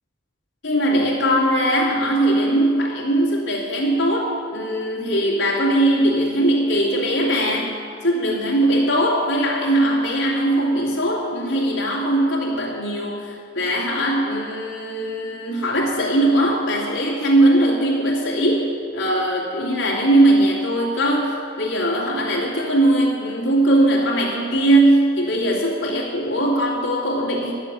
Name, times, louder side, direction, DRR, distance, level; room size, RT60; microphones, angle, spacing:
voice 1, 0.6-7.8 8.0-27.5, right 1 dB, 85° left, -5 dB, 2.6 m, -20 dB
11.0 x 7.4 x 8.2 m, 2.3 s
head